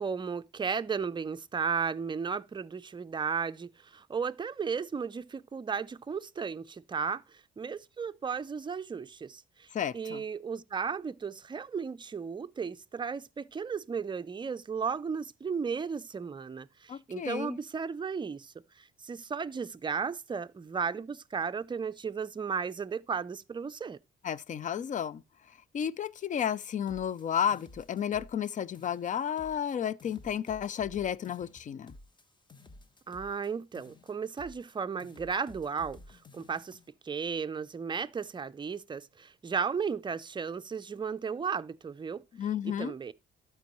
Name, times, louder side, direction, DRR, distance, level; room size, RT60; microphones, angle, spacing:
voice 1, 0.0-24.0 33.1-36.8 37.0-42.2 42.6-43.1, right 6 dB, 25° right, 0.5 m, -35 dB
voice 2, 9.7-10.2 16.9-17.6 24.2-25.2 25.7-32.0 42.3-42.9, left 9 dB, 40° left, 0.4 m, -32 dB
sound 1, 26.9-28.5 28.7-29.7 30.0-33.5 33.7-34.7 35.0-36.9, left 2 dB, 25° left, 1.0 m, -53 dB
12.5 x 4.7 x 3.0 m
cardioid pair, 90°, 20 cm